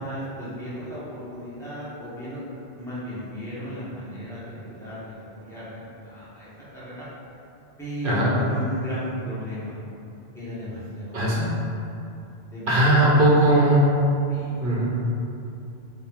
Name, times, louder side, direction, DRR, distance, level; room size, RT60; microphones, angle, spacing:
voice 1, 0.0-7.1 7.8-9.8 10.3-11.1 12.5-13.1 13.4-13.6 14.3-14.6, equal, 5° left, -11 dB, 1.0 m, -35 dB
voice 2, 11.1-11.5 12.7-13.9 14.6-14.9, right 1 dB, 55° right, -6 dB, 1.0 m, -18 dB
4.5 x 2.4 x 3.5 m, 2.8 s
omnidirectional pair, 1.1 m